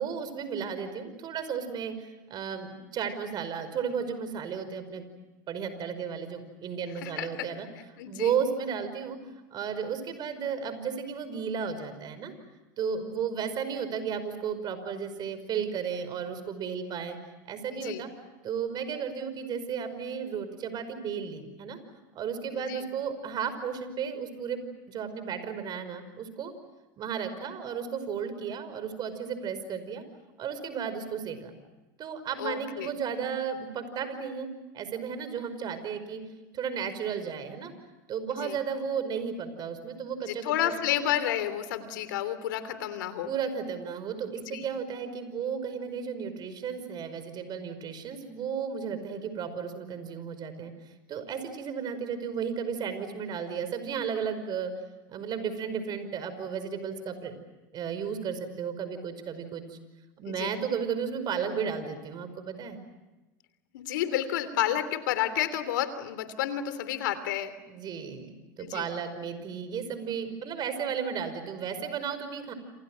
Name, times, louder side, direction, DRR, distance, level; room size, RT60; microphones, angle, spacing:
voice 1, 0.0-5.1 5.5-7.7 8.1-9.2 9.5-12.3 12.8-17.2 17.5-18.1 18.4-21.8 22.1-24.6 24.9-26.5 27.0-30.0 30.4-31.5 32.0-34.5 34.7-36.2 36.5-37.7 38.1-40.7 43.3-54.7 55.1-57.4 57.7-59.8 60.2-62.8 67.7-72.5, right 7 dB, 45° right, 11 dB, 5.3 m, -34 dB
voice 2, 7.0-7.5 8.0-8.3 17.7-18.0 22.5-22.8 32.4-32.9 38.3-38.6 40.3-43.3 44.5-44.6 60.3-60.5 63.7-67.5 68.6-68.9, left 11 dB, 85° left, 12 dB, 3.1 m, -31 dB
29.0 x 27.5 x 6.3 m, 1.1 s
supercardioid pair, 100°, 10 cm